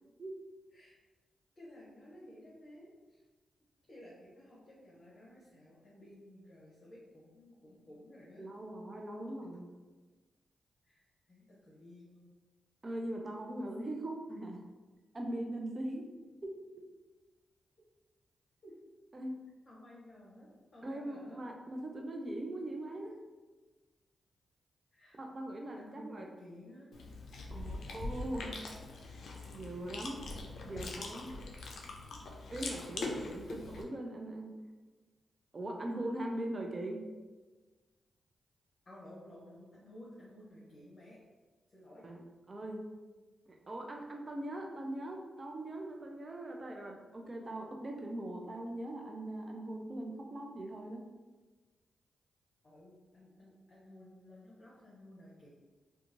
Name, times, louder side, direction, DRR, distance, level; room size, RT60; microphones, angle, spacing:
voice 1, 1.6-3.2 3.9-8.5 10.8-12.3 18.6-18.7 19.6-21.4 24.9-25.2 25.8-26.9 27.5-28.5 38.8-41.2 41.7-42.0 52.6-55.5, left 1 dB, 45° left, -7 dB, 0.8 m, -55 dB
voice 2, 8.4-9.7 12.8-14.6 15.1-16.1 16.4-16.9 19.1-19.4 20.8-23.2 25.1-26.3 27.5-28.5 29.5-30.2 30.6-31.3 32.5-34.5 35.5-37.0 42.0-42.2 42.5-42.8 43.5-51.0, right 1 dB, 40° right, 2 dB, 0.5 m, -41 dB
Chewing mastication, 26.9-33.8, left 3 dB, 75° left, 0.4 m, -43 dB
2.8 x 2.4 x 2.6 m, 1.3 s
supercardioid pair, 45°, 0 cm